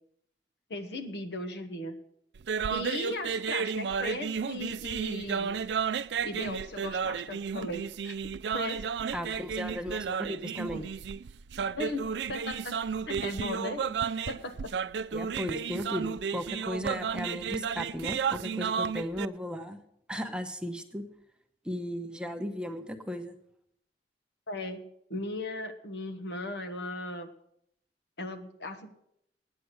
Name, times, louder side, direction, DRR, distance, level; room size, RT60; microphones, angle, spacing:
voice 1, 0.7-2.0 2.7-5.5 6.2-8.9 11.8-14.0 14.3-14.7 24.5-27.3 28.2-29.0, left 2 dB, 70° left, 6 dB, 1.3 m, -37 dB
sound 1, 2.4-19.3, right 6 dB, 70° right, 0.4 m, -33 dB
voice 2, 9.1-10.9 15.1-19.8 20.1-21.0 21.6-23.3, equal, 5° right, 5 dB, 0.9 m, -36 dB
9.5 x 9.3 x 7.9 m, 0.75 s
head